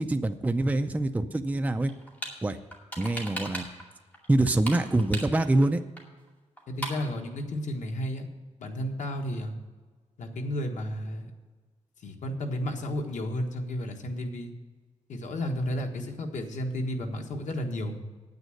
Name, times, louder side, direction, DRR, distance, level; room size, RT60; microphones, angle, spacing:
voice 1, 0.0-1.9 2.4-2.6 3.0-3.7 4.3-5.8, right 2 dB, 10° right, 7 dB, 0.5 m, -25 dB
sound 1, 1.9-2.4 2.7-3.9 4.1-5.7 6.0-6.1 6.3-6.4 6.6-7.1, equal, 15° left, 2.3 m, -37 dB
voice 2, 6.7-8.3 8.6-9.5 10.2-11.3 12.0-14.5 15.1-18.0, left 1 dB, 90° left, 4 dB, 1.4 m, -32 dB
9.4 x 8.7 x 6.4 m, 1.4 s
wide cardioid pair, 140°, 12 cm